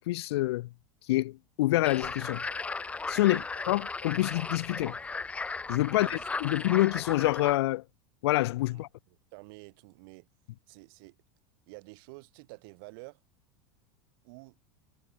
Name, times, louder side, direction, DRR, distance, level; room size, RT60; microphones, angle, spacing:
voice 1, 0.1-0.7 1.1-2.4 3.1-3.4 3.7-5.0 5.7-7.8 8.2-8.9, left 17 dB, 85° left, 0.5 m, -27 dB
sound 1, 1.8-7.6, left 4 dB, 10° left, 0.9 m, -36 dB
voice 2, 5.9-6.3 8.7-10.3 10.7-11.2 11.7-13.2 14.2-14.6, right 29 dB, 60° right, 2.8 m, -49 dB
supercardioid pair, 150°, 13 cm